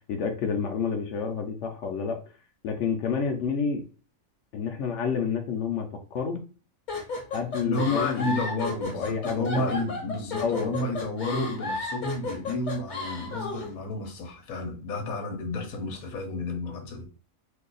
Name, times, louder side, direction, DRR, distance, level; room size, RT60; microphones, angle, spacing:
voice 1, 0.1-2.2 2.6-3.8 4.5-6.4 7.3-8.3 8.9-9.7 10.3-10.7, left 6 dB, 65° left, 0.8 m, -29 dB
sound 1, 6.9-13.7, left 3 dB, 40° left, 0.7 m, -33 dB
voice 2, 7.6-17.0, left 2 dB, 90° left, 1.2 m, -31 dB
2.7 x 2.3 x 3.8 m
omnidirectional pair, 1.5 m